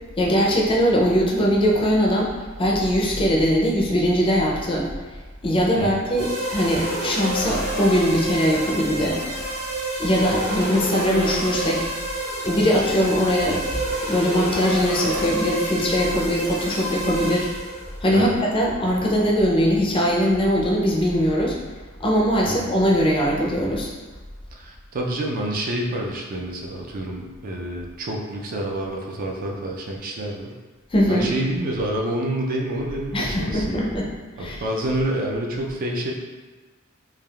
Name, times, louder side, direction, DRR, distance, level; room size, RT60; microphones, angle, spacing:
voice 1, 0.2-2.3 2.6-4.9 5.4-9.2 10.0-11.9 12.4-13.8 14.0-17.5 18.0-21.6 22.0-23.9 30.9-31.3 33.1-34.1 34.4-34.6, equal, 25° left, -3 dB, 0.4 m, -21 dB
sound 1, 6.2-17.9, right 1 dB, 80° right, 1.3 m, -29 dB
voice 2, 24.5-30.5 31.1-33.9 34.4-36.1, right 1 dB, 45° right, -1 dB, 0.3 m, -28 dB
3.3 x 2.3 x 2.3 m, 1.3 s
head